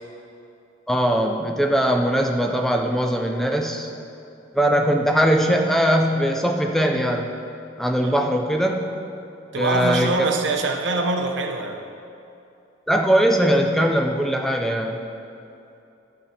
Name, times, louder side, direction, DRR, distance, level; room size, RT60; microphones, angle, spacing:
voice 1, 0.9-3.9 4.5-7.4 7.8-9.0 9.6-10.1 12.9-15.0, equal, ahead, 3 dB, 0.4 m, -20 dB
voice 2, 9.5-11.8, right 3 dB, 65° right, 4 dB, 0.7 m, -24 dB
12.0 x 4.9 x 4.4 m, 2.7 s
head